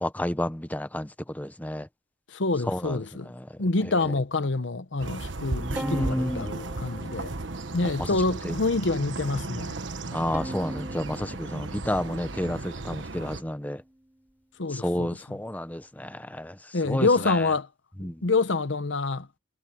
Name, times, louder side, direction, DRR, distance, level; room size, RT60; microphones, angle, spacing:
voice 1, 0.0-1.9 2.7-3.0 5.6-6.5 8.0-8.1 8.4-8.5 10.1-13.8 14.7-16.6 16.9-17.3 18.0-18.2, left 1 dB, 10° left, 0.8 m, -31 dB
voice 2, 2.3-3.3 3.6-7.3 7.7-9.8 14.6-15.4 16.7-17.7 18.0-19.3, left 3 dB, 75° left, 1.0 m, -27 dB
sound 1, 5.0-13.4, right 2 dB, 75° right, 1.3 m, -35 dB
Bowed string instrument, 5.8-8.1 8.6-9.4 10.3-12.9, right 1 dB, 10° right, 6.3 m, -41 dB
head